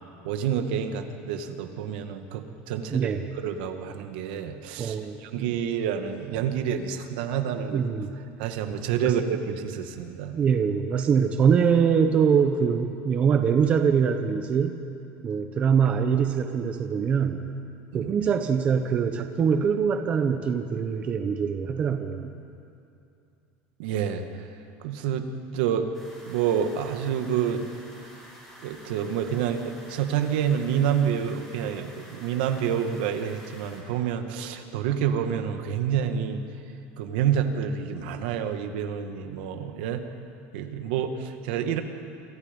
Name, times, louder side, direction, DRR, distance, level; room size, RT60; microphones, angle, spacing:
voice 1, 0.2-3.1 3.4-7.8 8.4-10.3 17.9-18.1 23.8-24.5 24.8-25.9 26.3-27.7 28.6-36.4 37.0-40.0 40.5-41.8, right 8 dB, 70° right, 6 dB, 2.0 m, -28 dB
voice 2, 2.9-3.2 4.8-5.5 7.7-8.1 9.0-9.1 10.3-14.7 15.2-17.4 17.9-22.3, right 7 dB, 25° right, 6 dB, 1.0 m, -23 dB
sound 1, 25.9-33.8, equal, 5° left, 6.0 m, -49 dB
27.5 x 27.0 x 5.4 m, 2.6 s
cardioid pair, 180°, 5 cm